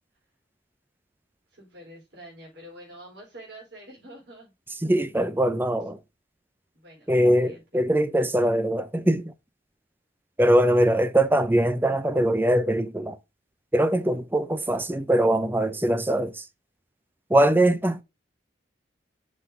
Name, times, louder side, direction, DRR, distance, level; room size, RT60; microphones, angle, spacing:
voice 1, 1.5-4.5 6.7-7.1 7.4-7.6, right 1 dB, 60° right, 4.0 m, -46 dB
voice 2, 4.8-6.0 7.1-9.3 10.4-13.2 13.7-16.4 17.3-18.0, right 1 dB, 10° right, 0.6 m, -22 dB
6.1 x 5.7 x 3.7 m
head